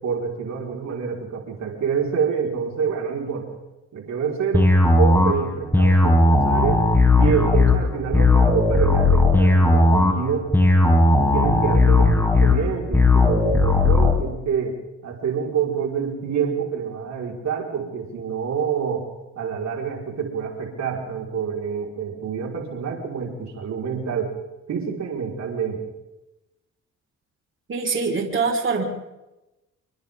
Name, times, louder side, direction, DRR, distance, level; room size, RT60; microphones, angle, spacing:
voice 1, 0.0-3.5 3.9-6.9 7.2-10.5 10.9-14.8 15.0-19.1 19.3-24.4 24.7-25.8, right 6 dB, 65° right, 0 dB, 5.0 m, -27 dB
sound 1, 4.5-14.1, left 2 dB, 10° left, 5.6 m, -17 dB
voice 2, 27.7-28.8, right 4 dB, 40° right, 1 dB, 5.1 m, -23 dB
28.0 x 24.0 x 3.8 m, 0.97 s
cardioid pair, 90°, 30 cm